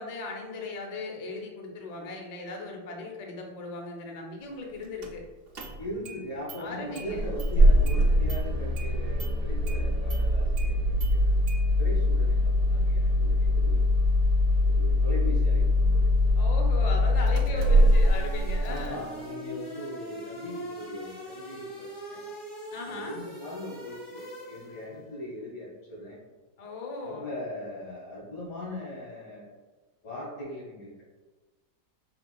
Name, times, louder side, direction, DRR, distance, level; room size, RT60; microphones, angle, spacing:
voice 1, 0.0-5.2 6.6-7.3 16.4-19.0 22.7-23.2 26.6-27.3, left 3 dB, 65° left, 0 dB, 0.4 m, -37 dB
Engine starting, 5.0-5.1 5.5-6.2 6.5-6.6 7.0-18.9, left 1 dB, 70° right, 0.5 m, -23 dB
voice 2, 5.8-11.5 11.8-13.9 14.6-16.1 17.4-18.0 18.6-22.3 22.8-26.2 27.0-29.6 30.0-31.0, left 1 dB, 85° left, -7 dB, 1.8 m, -40 dB
sound 1, 17.6-25.0, equal, 25° left, 1.5 m, -42 dB
4.6 x 3.7 x 2.3 m, 1.2 s
omnidirectional pair, 1.7 m